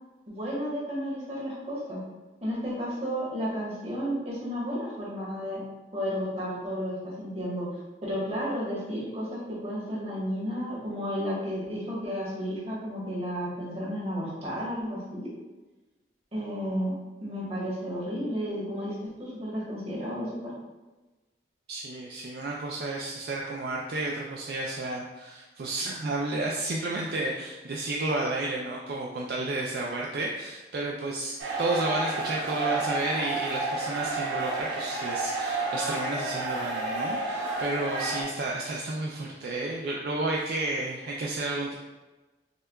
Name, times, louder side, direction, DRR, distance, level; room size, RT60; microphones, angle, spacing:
voice 1, 0.3-2.0 2.4-5.6 5.9-7.7 8.0-15.3 16.3-16.9 17.2-20.5, equal, 35° right, -7 dB, 1.2 m, -32 dB
voice 2, 21.7-41.7, right 2 dB, 60° right, -2 dB, 0.3 m, -32 dB
sound 1, 31.4-38.2, right 2 dB, 85° right, 0.8 m, -31 dB
6.4 x 2.2 x 2.3 m, 1.2 s
head